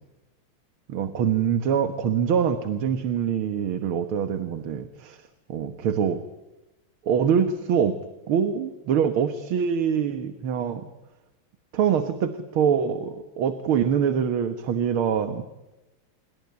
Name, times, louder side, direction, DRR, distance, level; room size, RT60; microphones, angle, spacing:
voice 1, 0.9-5.2 5.5-6.2 7.1-8.0 8.3-10.9 11.7-15.5, right 7 dB, 75° right, 10 dB, 2.2 m, -24 dB
27.0 x 23.0 x 9.5 m, 1.0 s
omnidirectional pair, 2.4 m